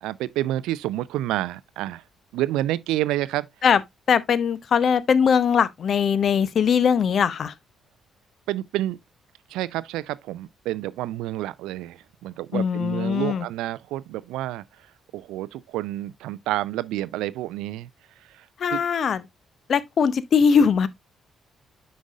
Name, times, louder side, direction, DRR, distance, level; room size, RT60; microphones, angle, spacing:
voice 1, 0.0-2.0 2.3-3.5 8.5-9.0 9.5-14.6 15.1-17.9 18.7-18.8, right 15 dB, 65° right, 0.3 m, -29 dB
voice 2, 4.1-7.5 12.5-13.4 18.6-19.2 19.7-20.9, left 6 dB, 50° left, 0.6 m, -20 dB
9.5 x 5.2 x 2.4 m
figure-of-eight pair, 40°, 0 cm